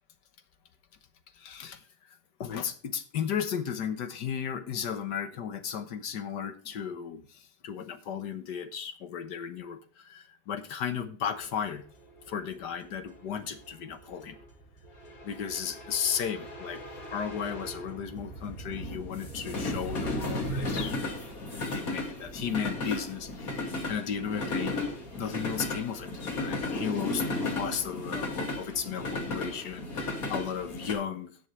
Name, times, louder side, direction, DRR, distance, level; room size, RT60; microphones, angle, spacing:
voice 1, 1.3-11.8 12.3-14.4 15.2-16.8 17.1-21.0 21.7-24.8 25.2-31.3, left 7 dB, 70° left, 10 dB, 1.7 m, -35 dB
sound 1, 11.4-30.9, left 2 dB, 55° left, 2.7 m, -35 dB
18.0 x 6.3 x 3.2 m, 0.40 s
omnidirectional pair, 1.9 m